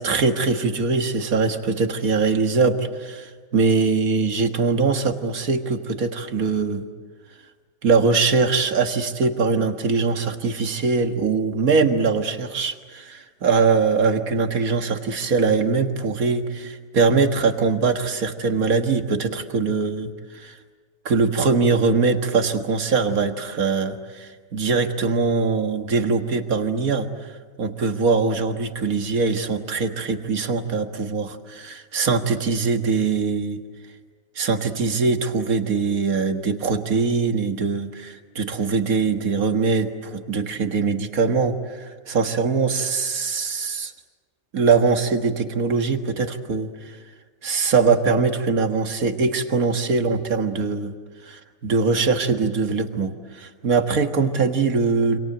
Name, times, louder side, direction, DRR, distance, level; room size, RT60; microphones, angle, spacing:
voice 1, 0.0-6.9 7.8-20.6 21.1-27.1 27.6-33.6 34.4-43.9 44.5-46.7 47.4-50.9 51.2-55.2, right 4 dB, 80° right, 7 dB, 2.1 m, -22 dB
28.5 x 26.5 x 7.9 m, 1.5 s
omnidirectional pair, 1.5 m